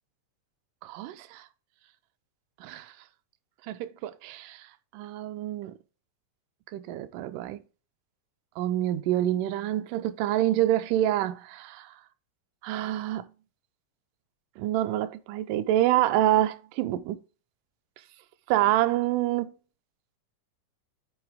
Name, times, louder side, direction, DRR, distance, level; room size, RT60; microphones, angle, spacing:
voice 1, 0.8-1.5 2.6-2.9 3.7-4.7 4.9-5.8 6.7-7.6 8.6-12.0 12.6-13.3 14.6-17.2 18.5-19.5, right 13 dB, 90° right, 2.1 m, -27 dB
7.9 x 3.9 x 3.4 m
omnidirectional pair, 3.6 m